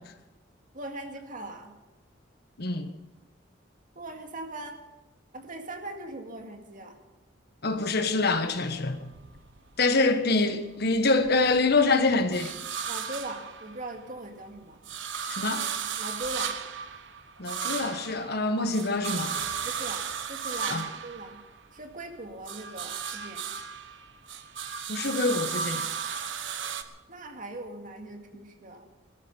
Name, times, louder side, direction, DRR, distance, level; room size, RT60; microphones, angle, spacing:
voice 1, 0.7-1.7 4.0-4.8 5.3-7.0 12.9-14.8 16.0-16.6 19.6-21.4 21.7-23.5 27.1-28.9, right 2 dB, 45° right, 2.2 m, -40 dB
voice 2, 2.6-2.9 7.6-9.1 9.8-12.5 15.3-15.7 17.4-19.4 20.7-20.8 24.9-25.9, left 3 dB, 55° left, 1.4 m, -25 dB
sound 1, 7.7-10.1 10.5-14.1 14.5-22.0 22.3-26.8, right 7 dB, 75° right, 1.2 m, -35 dB
20.0 x 13.5 x 5.4 m
head